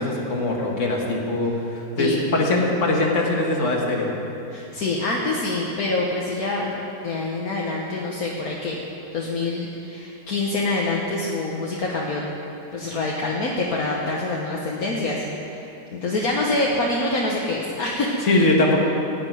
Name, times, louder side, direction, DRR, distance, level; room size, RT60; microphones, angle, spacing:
voice 1, 0.0-4.1 18.3-18.8, left 2 dB, 45° left, -1 dB, 2.1 m, -22 dB
voice 2, 4.5-8.8 9.1-12.2 12.7-15.6 15.9-18.4, left 2 dB, 65° left, -3 dB, 1.6 m, -26 dB
16.5 x 6.0 x 9.3 m, 2.9 s
omnidirectional pair, 1.7 m